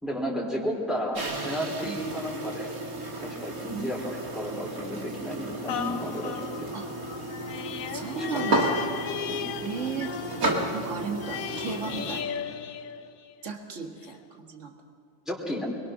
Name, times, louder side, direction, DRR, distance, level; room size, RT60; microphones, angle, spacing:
voice 1, 0.0-2.7 3.2-6.4 8.1-8.3 9.3-9.4 15.3-15.7, equal, ahead, -3 dB, 3.4 m, -32 dB
sound 1, 1.1-12.2, right 2 dB, 85° right, 2.8 m, -33 dB
voice 2, 1.8-2.1 3.7-3.9 6.7-6.9 7.9-8.9 9.6-10.1 10.7-12.4 13.4-14.7, right 5 dB, 60° right, 4 dB, 2.0 m, -35 dB
sound 2, 5.7-13.5 14.0-14.1, left 9 dB, 80° left, 1.1 m, -36 dB
25.0 x 22.0 x 6.4 m, 2.4 s
omnidirectional pair, 1.5 m